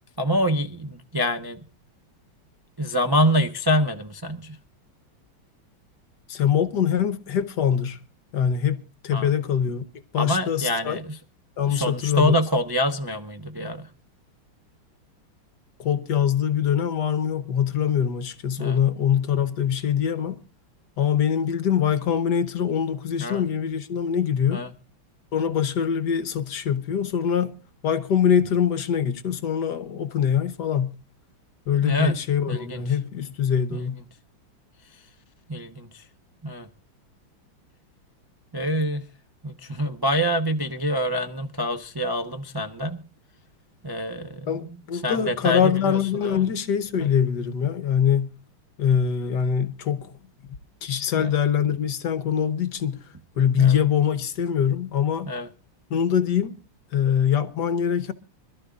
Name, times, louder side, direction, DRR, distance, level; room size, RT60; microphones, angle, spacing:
voice 1, 0.2-1.6 2.8-4.6 9.1-9.3 10.2-11.2 11.7-13.9 18.6-18.8 23.2-23.4 24.5-24.7 31.8-32.1 32.5-32.8 33.7-33.8 35.5-36.0 36.4-36.7 38.5-39.0 39.4-43.0 43.8-44.5 45.0-46.4 47.0-47.1 51.2-51.3 53.6-53.8 55.3-55.5, equal, 25° right, 0.5 m, -26 dB
voice 2, 6.3-8.0 8.3-9.8 10.1-11.0 11.6-12.3 15.8-20.4 21.0-24.7 25.3-27.5 27.8-31.0 31.7-34.0 44.5-48.3 48.8-50.2 50.8-55.3 55.9-56.5 56.9-58.1, left 8 dB, 60° left, 1.5 m, -23 dB
26.0 x 13.0 x 2.4 m
omnidirectional pair, 2.3 m